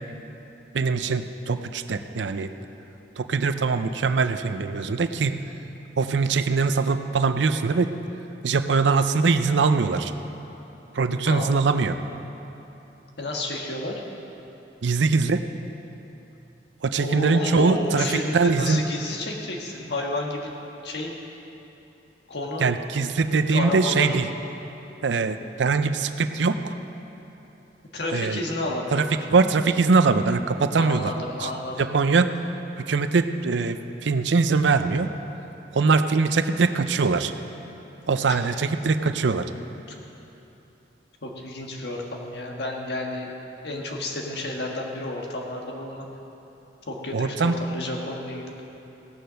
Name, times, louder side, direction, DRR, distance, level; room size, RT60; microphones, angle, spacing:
voice 1, 0.7-2.5 3.2-5.4 6.0-7.9 8.4-10.1 10.9-12.0 14.8-15.4 16.8-18.1 18.3-18.8 22.6-24.3 25.0-26.8 28.1-28.4 28.9-31.1 31.4-31.5 31.8-32.3 32.8-33.8 34.0-35.1 35.7-37.3 38.1-39.5 47.1-47.5, right 4 dB, 80° right, 10 dB, 0.5 m, -22 dB
voice 2, 11.2-11.6 13.2-14.0 16.9-20.5 20.8-21.1 22.3-22.7 23.5-24.1 27.9-29.3 30.8-31.9 38.3-38.4 41.2-43.3 43.6-46.0 46.9-48.5, left 2 dB, 65° left, 0 dB, 1.6 m, -31 dB
16.5 x 6.9 x 6.3 m, 3.0 s
head